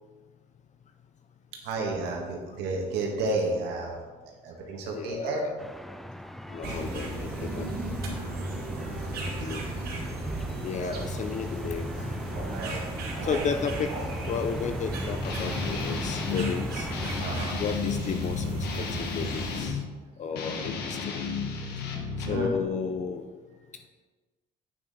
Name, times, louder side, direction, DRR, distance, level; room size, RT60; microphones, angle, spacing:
voice 1, 1.6-4.0 4.4-5.4 12.5-12.8 13.1-13.4 17.2-17.6 21.9-22.0 22.2-22.5, right 3 dB, 85° right, -1 dB, 1.7 m, -31 dB
voice 2, 4.9-5.5 6.5-7.7 9.4-9.6 10.6-11.9 12.3-12.5 13.2-13.9 14.3-16.9 17.6-18.5 18.8-19.8 20.2-21.3 22.3-23.3, left 6 dB, 45° left, 7 dB, 0.6 m, -33 dB
sound 1, 5.6-17.2, equal, ahead, 0.3 m, -39 dB
sound 2, 6.6-19.7, right 2 dB, 65° right, 2.1 m, -35 dB
Guitar, 15.2-16.5 16.9-19.8 20.3-22.5, left 5 dB, 75° left, 1.4 m, -33 dB
8.5 x 6.5 x 4.2 m, 1.3 s
cardioid pair, 110°, 17 cm